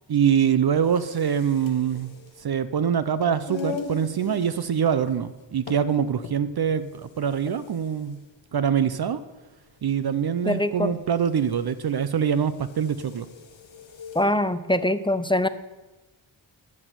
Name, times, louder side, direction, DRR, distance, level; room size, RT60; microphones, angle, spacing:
voice 1, 0.1-2.1 2.4-8.2 8.5-9.2 9.8-13.3, right 8 dB, 55° right, 13 dB, 0.6 m, -24 dB
sound 1, 0.8-14.3, left 6 dB, 75° left, 1.3 m, -42 dB
voice 2, 10.5-10.9 14.1-15.5, left 1 dB, 10° left, 12 dB, 0.5 m, -23 dB
12.0 x 6.2 x 9.4 m, 1.1 s
wide cardioid pair, 115°, 46 cm